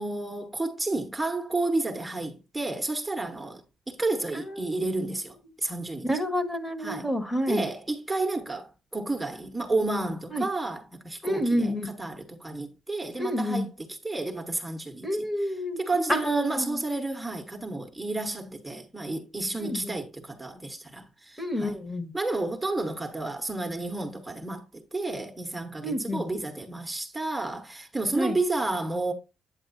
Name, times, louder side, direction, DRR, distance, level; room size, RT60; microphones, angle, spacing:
voice 1, 0.0-6.1 6.8-7.1 7.5-21.8 22.1-29.1, right 2 dB, 10° right, 1.2 m, -31 dB
voice 2, 4.5-4.8 6.0-7.6 10.3-10.4 11.2-11.9 13.2-13.7 15.0-15.8 16.1-16.8 19.6-19.9 21.4-22.1 25.8-26.2 28.1-28.4, equal, 10° left, 1.5 m, -28 dB
8.9 x 7.7 x 2.6 m
cardioid pair, 90°, 0 cm